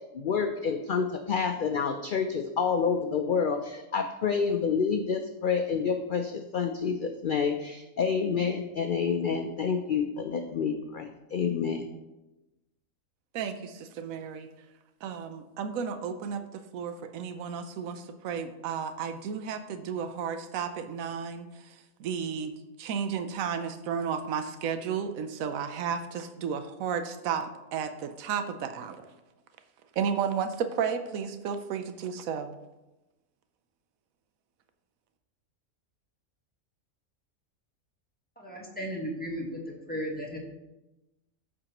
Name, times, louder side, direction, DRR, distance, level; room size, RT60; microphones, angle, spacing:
voice 1, 0.0-11.8, left 6 dB, 65° left, 5 dB, 0.5 m, -28 dB
voice 2, 13.3-14.5 15.0-22.5 22.8-29.1 30.0-32.5, right 7 dB, 80° right, 9 dB, 1.1 m, -33 dB
voice 3, 38.4-40.4, equal, 5° left, -2 dB, 1.3 m, -35 dB
14.0 x 4.8 x 3.0 m, 1.0 s
omnidirectional pair, 1.4 m